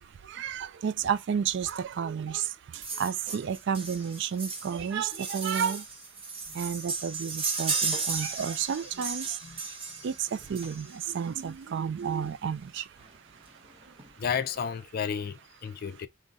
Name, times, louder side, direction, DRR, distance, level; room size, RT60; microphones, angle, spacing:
voice 1, 0.0-5.9 6.5-13.0 13.9-14.0, right 7 dB, 55° right, 0.3 m, -32 dB
sound 1, 2.8-11.1 12.2-12.3 12.6-12.7 13.0-13.1 13.5-14.1 14.6-14.7, right 4 dB, 25° right, 0.8 m, -35 dB
voice 2, 14.2-16.1, left 7 dB, 45° left, 0.4 m, -32 dB
3.7 x 2.1 x 3.9 m
head